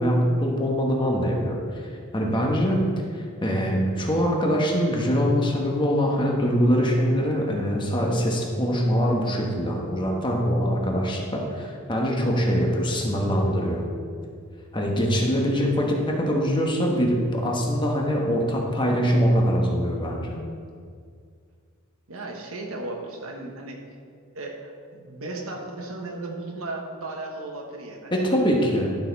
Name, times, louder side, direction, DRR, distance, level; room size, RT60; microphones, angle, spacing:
voice 1, 0.0-13.8 14.7-20.4 28.1-28.9, equal, 20° left, 0 dB, 1.2 m, -23 dB
voice 2, 22.1-23.8 24.3-28.2, right 2 dB, 70° right, 2 dB, 1.3 m, -35 dB
12.0 x 6.5 x 4.1 m, 2.1 s
head